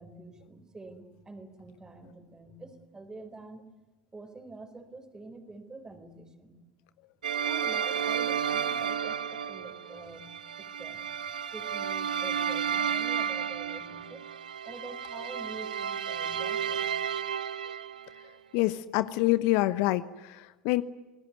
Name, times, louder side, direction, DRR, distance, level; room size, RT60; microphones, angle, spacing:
voice 1, 0.0-3.7 4.1-6.6 7.4-10.3 10.6-11.0 11.5-14.2 14.6-16.9, right 2 dB, 15° right, 9 dB, 4.3 m, -46 dB
sound 1, 7.2-18.2, right 8 dB, 80° right, 0.8 m, -32 dB
voice 2, 18.5-20.8, left 18 dB, 55° left, 14 dB, 1.0 m, -26 dB
28.5 x 19.0 x 9.4 m, 1.2 s
hypercardioid pair, 85°, 4 cm